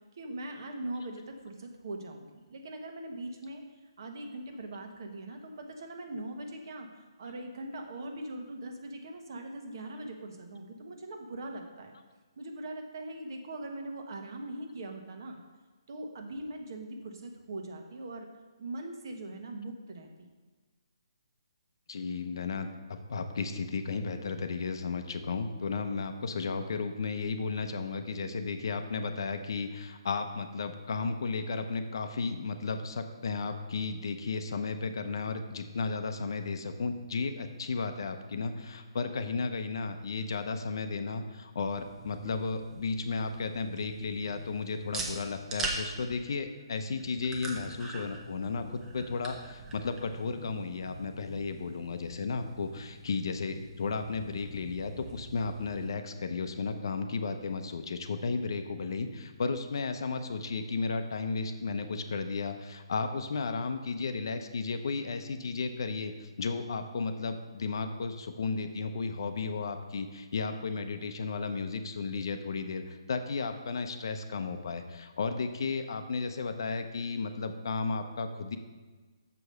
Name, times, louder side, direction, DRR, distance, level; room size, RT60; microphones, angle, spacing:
voice 1, 0.1-12.0 12.4-15.4 15.9-18.3 18.6-20.3, right 1 dB, 50° right, 4 dB, 1.2 m, -41 dB
voice 2, 21.9-78.6, left 4 dB, 55° left, 8 dB, 0.7 m, -34 dB
sound 1, 41.6-55.9, right 2 dB, 10° right, 0.6 m, -43 dB
6.9 x 4.9 x 6.6 m, 1.3 s
hypercardioid pair, 165°, 3 cm